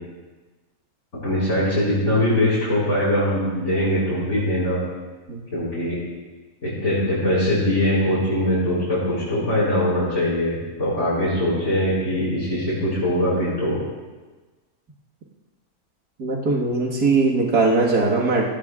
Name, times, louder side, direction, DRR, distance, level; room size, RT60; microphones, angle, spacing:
voice 1, 1.2-4.8 5.5-6.0 6.6-13.8, left 1 dB, 55° left, -11 dB, 5.6 m, -22 dB
voice 2, 16.2-18.4, right 3 dB, 85° right, -3 dB, 2.2 m, -20 dB
18.0 x 17.0 x 2.4 m, 1.3 s
omnidirectional pair, 1.6 m